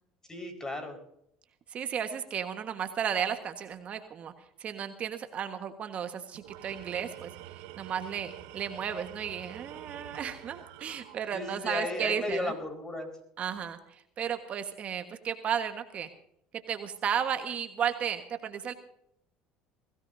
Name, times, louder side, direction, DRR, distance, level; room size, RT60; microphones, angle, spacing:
voice 1, 0.3-1.0 11.3-13.1, left 2 dB, 20° left, 5 dB, 4.9 m, -34 dB
voice 2, 1.7-4.3 4.6-12.5 13.4-16.1 16.7-18.7, right 8 dB, 45° right, 7 dB, 1.5 m, -34 dB
Tools, 6.3-11.7, right 14 dB, 80° right, 0.9 m, -47 dB
21.5 x 17.0 x 2.7 m, 0.75 s
supercardioid pair, 90°, 3 cm